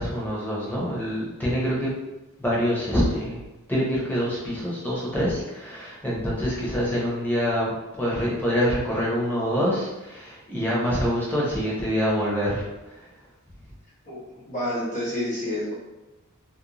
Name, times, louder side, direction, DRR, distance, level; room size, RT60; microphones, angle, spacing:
voice 1, 0.0-1.9 2.4-3.4 3.7-13.1, equal, 10° left, -6 dB, 0.7 m, -26 dB
voice 2, 14.1-15.7, left 1 dB, 35° left, -7 dB, 1.0 m, -29 dB
2.5 x 2.1 x 2.9 m, 1.0 s
head